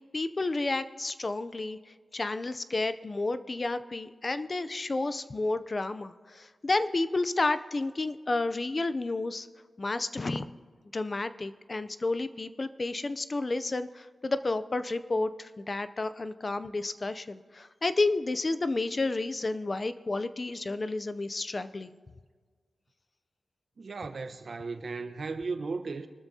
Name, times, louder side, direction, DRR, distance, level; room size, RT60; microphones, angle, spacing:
voice 1, 0.0-9.5 9.8-10.5 10.9-21.9, left 2 dB, 30° left, 0.5 m, -31 dB
voice 2, 23.8-26.1, right 4 dB, 55° right, 1.0 m, -36 dB
24.5 x 13.0 x 2.8 m
wide cardioid pair, 135°, 0 cm